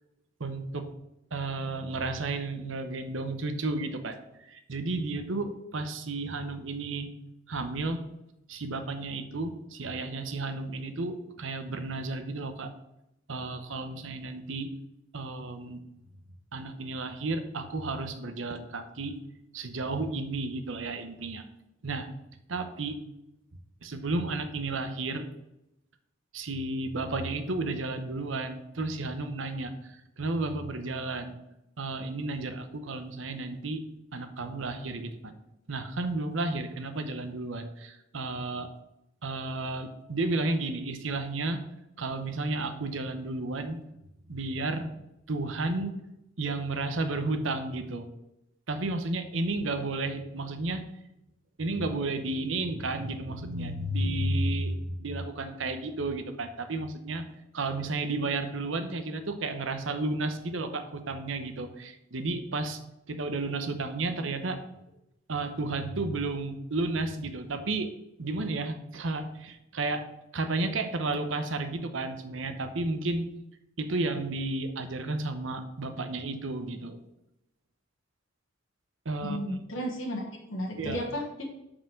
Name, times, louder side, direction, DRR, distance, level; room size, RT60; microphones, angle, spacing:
voice 1, 0.4-0.9 1.3-7.1 7.5-8.0 8.5-12.7 13.3-14.7 15.1-15.8 16.5-19.2 19.5-21.4 21.8-22.1 22.5-23.0 23.8-25.3 26.3-31.4 31.8-33.8 34.1-35.3 35.7-38.7 39.2-41.6 42.0-43.8 44.3-44.9 45.3-45.9 46.4-48.1 48.7-50.8 51.6-57.2 57.5-62.8 63.1-64.6 65.3-67.9 68.2-70.0 70.3-73.2 73.8-77.0 79.0-79.4 80.8-81.0, right 2 dB, 75° right, 8 dB, 0.9 m, -32 dB
voice 2, 79.2-81.4, equal, 80° left, 0 dB, 1.4 m, -34 dB
5.7 x 5.0 x 6.4 m, 0.86 s
head